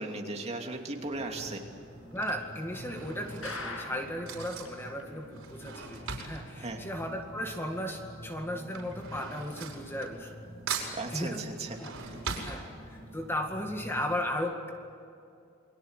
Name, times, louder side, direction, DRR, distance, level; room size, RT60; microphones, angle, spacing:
voice 1, 0.0-1.6 6.6-6.8 10.9-12.2, right 2 dB, 30° right, 2 dB, 2.7 m, -37 dB
Drawer open or close / Cutlery silverware, 0.7-1.1 1.9-7.8 8.0-10.4 10.7-13.2 13.6-13.7 13.9-14.0, right 5 dB, 85° right, 5.5 m, -41 dB
sound 1, 1.0-14.2, equal, 45° left, 5.5 m, -49 dB
voice 2, 2.1-10.3 11.1-11.4 11.8-11.9 12.4-14.8, left 1 dB, 10° left, 3 dB, 2.1 m, -35 dB
sound 2, 3.4-4.3 4.7-4.8 5.0-5.1 5.6-5.7, left 3 dB, 75° left, 6.8 m, -39 dB
29.0 x 22.5 x 8.2 m, 2.5 s
head